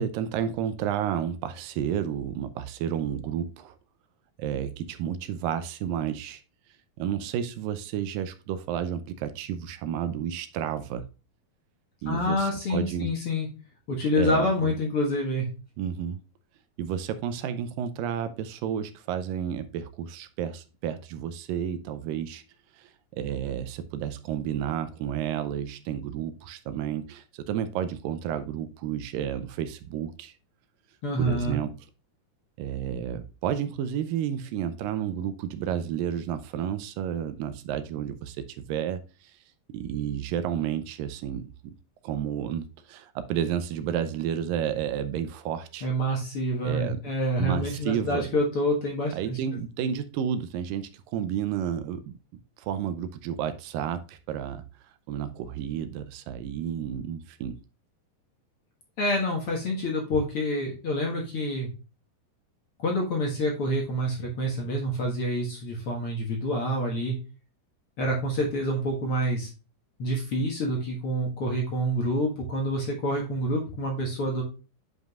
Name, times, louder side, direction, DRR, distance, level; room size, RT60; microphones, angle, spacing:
voice 1, 0.0-3.8 4.4-6.4 7.0-11.1 12.0-13.1 14.2-14.7 15.8-16.2 16.8-22.4 22.8-30.3 31.2-31.7 32.6-39.0 39.7-41.7 42.0-45.9 46.7-47.0 47.4-48.3 49.1-52.1 52.6-54.6 55.1-57.6, right 9 dB, 80° right, 2.3 m, -31 dB
voice 2, 12.1-13.5 13.9-15.5 31.0-31.6 45.8-49.4 59.0-61.7 62.8-67.2 68.0-69.5 70.0-74.4, equal, 50° left, 2.0 m, -27 dB
9.4 x 5.1 x 2.4 m
omnidirectional pair, 4.1 m